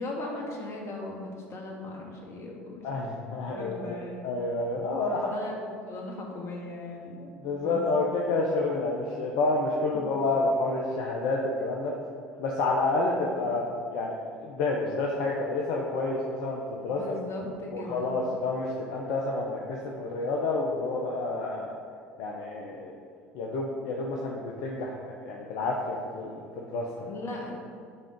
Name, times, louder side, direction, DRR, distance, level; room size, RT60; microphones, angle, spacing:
voice 1, 0.0-3.1 3.5-4.3 5.1-7.8 13.4-13.6 16.9-18.2 27.0-27.5, left 2 dB, 45° left, -1 dB, 1.9 m, -38 dB
voice 2, 2.8-5.3 7.4-11.9 12.4-17.0 17.7-21.7 22.2-22.9 23.3-27.2, left 2 dB, 60° left, -1 dB, 0.9 m, -29 dB
10.5 x 3.8 x 5.1 m, 2.3 s
hypercardioid pair, 70°, 7 cm